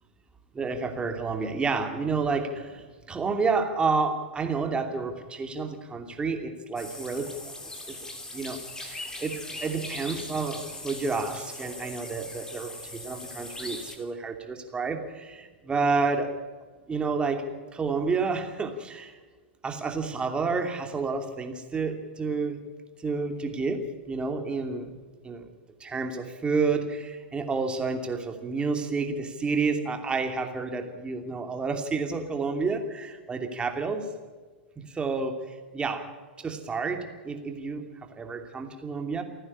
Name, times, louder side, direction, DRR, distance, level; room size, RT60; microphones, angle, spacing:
voice 1, 0.6-2.7 3.1-7.3 7.9-8.0 8.3-15.0 15.3-15.4 15.7-16.3 16.9-17.4 17.7-19.1 19.6-22.6 23.0-24.9 25.2-25.4 25.8-34.0 35.0-35.4 35.7-36.0 36.4-37.8 38.2-39.2, right 4 dB, 15° right, 5 dB, 2.8 m, -29 dB
sound 1, 6.8-14.0, left 2 dB, 10° left, 3.3 m, -40 dB
28.5 x 9.9 x 9.9 m, 1.4 s
hypercardioid pair, 105°, 6 cm